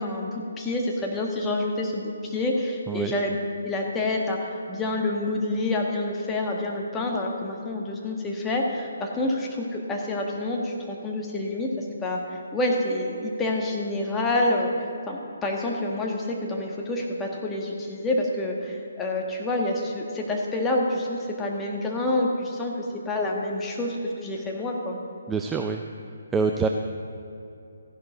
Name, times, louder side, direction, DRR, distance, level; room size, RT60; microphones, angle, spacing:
voice 1, 0.0-3.4 3.6-11.7 12.0-12.2 12.5-14.7 15.1-22.7 23.0-25.0, left 2 dB, 10° left, -1 dB, 1.5 m, -27 dB
voice 2, 25.3-25.8 26.3-26.7, right 5 dB, 10° right, 3 dB, 0.4 m, -25 dB
14.5 x 11.0 x 4.0 m, 2.7 s
figure-of-eight pair, 145°, 0 cm